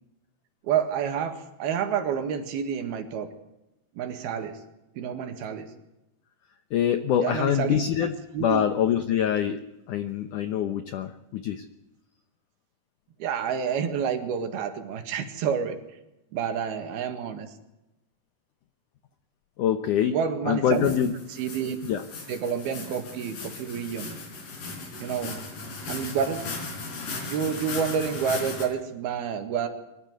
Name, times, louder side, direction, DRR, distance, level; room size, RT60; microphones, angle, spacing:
voice 1, 0.6-3.3 4.0-4.6 5.0-5.7 7.2-7.8 8.3-8.6 13.2-15.8 16.3-17.5 20.1-20.9 21.3-21.8 22.3-24.2 25.0-25.4 25.9-26.5 27.3-29.7, right 7 dB, 70° right, 8 dB, 3.5 m, -29 dB
voice 2, 6.7-9.6 9.9-11.7 19.6-20.2 20.5-21.1 21.8-22.0, left 9 dB, 75° left, 10 dB, 1.8 m, -25 dB
sound 1, 20.7-28.7, left 3 dB, 50° left, 5.3 m, -37 dB
23.5 x 13.0 x 9.4 m, 0.95 s
omnidirectional pair, 4.9 m